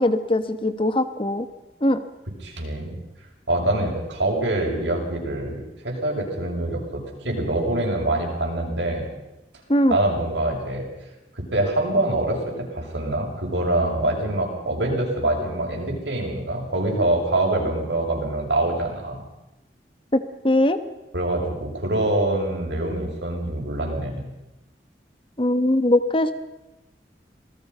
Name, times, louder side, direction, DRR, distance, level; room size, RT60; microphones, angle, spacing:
voice 1, 0.0-1.5 1.8-2.0 9.7-10.0 20.1-20.8 25.4-26.3, left 1 dB, 30° left, 11 dB, 1.3 m, -21 dB
voice 2, 2.4-3.0 3.5-9.1 9.9-10.9 11.3-19.2 21.1-24.2, right 1 dB, 85° right, 0 dB, 6.8 m, -25 dB
27.5 x 19.0 x 5.6 m, 0.98 s
head